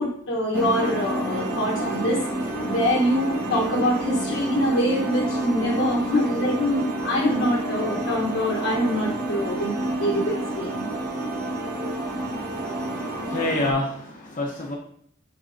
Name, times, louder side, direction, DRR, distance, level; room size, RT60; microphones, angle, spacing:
voice 1, 0.0-10.8, equal, 70° left, -2 dB, 1.1 m, -25 dB
sound 1, 0.5-13.7, right 1 dB, 45° right, 1.0 m, -29 dB
voice 2, 12.7-14.7, left 2 dB, 40° left, -1 dB, 0.8 m, -28 dB
10.0 x 4.1 x 2.6 m, 0.67 s
head